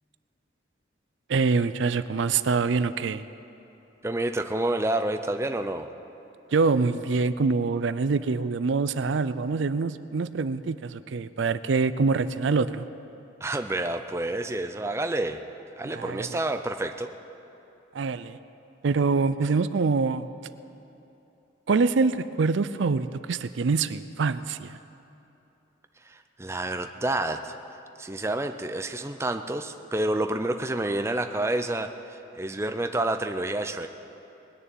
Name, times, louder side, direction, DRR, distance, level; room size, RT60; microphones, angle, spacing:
voice 1, 1.3-3.2 6.5-12.8 15.8-16.4 17.9-18.4 18.8-20.3 21.7-24.8, right 4 dB, 75° right, 14 dB, 0.5 m, -25 dB
voice 2, 4.0-5.9 13.4-15.4 15.8-17.1 26.0-27.5 28.0-33.9, right 2 dB, 15° right, 7 dB, 0.4 m, -29 dB
20.0 x 6.9 x 9.0 m, 2.9 s
head